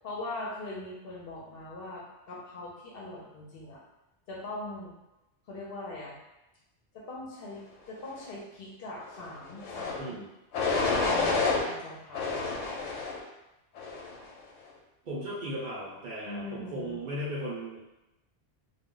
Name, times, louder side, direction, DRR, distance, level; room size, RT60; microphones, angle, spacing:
voice 1, 0.0-3.8 4.3-4.9 5.5-6.2 6.9-10.3 10.7-11.4 11.7-12.4 16.2-17.0, left 2 dB, 60° left, -3 dB, 0.8 m, -41 dB
sound 1, 9.6-10.0 10.5-11.6 12.1-13.2 13.7-14.2, left 3 dB, 85° left, 0.9 m, -28 dB
voice 2, 15.0-17.8, right 1 dB, 55° right, -6 dB, 0.6 m, -36 dB
2.3 x 2.1 x 3.6 m, 0.97 s
omnidirectional pair, 1.2 m